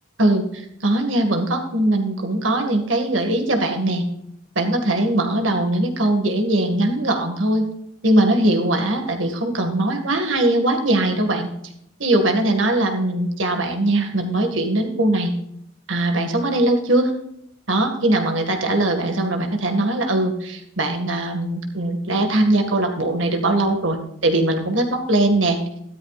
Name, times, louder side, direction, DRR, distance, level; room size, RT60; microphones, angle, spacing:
voice 1, 0.2-4.1 4.6-7.6 8.0-11.5 12.0-15.3 15.9-17.1 17.7-25.6, right 1 dB, 80° right, 4 dB, 1.9 m, -20 dB
13.5 x 12.5 x 2.5 m, 0.76 s
head